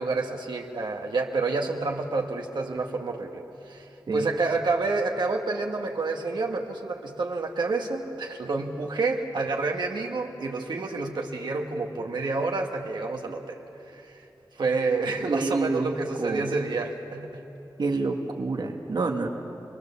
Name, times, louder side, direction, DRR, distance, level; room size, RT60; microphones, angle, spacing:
voice 1, 0.0-13.6 13.9-14.2 14.6-17.4, right 3 dB, 90° right, 1 dB, 1.6 m, -29 dB
voice 2, 15.3-16.5 17.8-19.3, right 3 dB, 70° right, 2 dB, 1.5 m, -28 dB
26.5 x 21.5 x 7.0 m, 2.9 s
wide cardioid pair, 85°, 8 cm